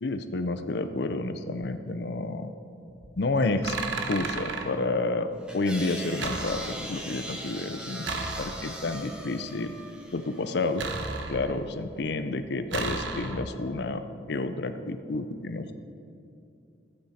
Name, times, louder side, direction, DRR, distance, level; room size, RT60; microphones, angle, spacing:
voice 1, 0.0-2.5 3.2-3.8 4.1-5.3 5.5-8.1 8.4-9.7 10.1-10.9 11.3-14.0 14.3-15.7, left 2 dB, 65° left, 9 dB, 0.5 m, -30 dB
sound 1, 2.9-3.2 3.6-4.7 6.2-7.0 8.0-8.9 10.8-11.7 12.7-13.7, right 3 dB, 85° right, 1.0 m, -34 dB
sound 2, 5.5-10.8, equal, 5° right, 1.0 m, -40 dB
15.0 x 8.7 x 4.2 m, 2.6 s
head